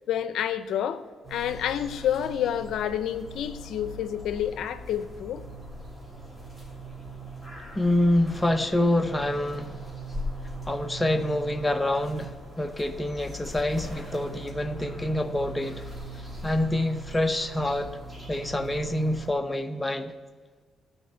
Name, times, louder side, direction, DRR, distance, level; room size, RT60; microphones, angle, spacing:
voice 1, 0.1-1.0 1.3-5.4, left 10 dB, 75° left, 0.6 m, -29 dB
sound 1, 1.2-19.3, right 1 dB, 10° right, 2.8 m, -40 dB
voice 2, 7.7-9.8 10.7-15.8 16.4-17.9 18.3-20.1, left 1 dB, 10° left, 0.7 m, -26 dB
13.0 x 4.5 x 8.5 m
cardioid pair, 90°, 0 cm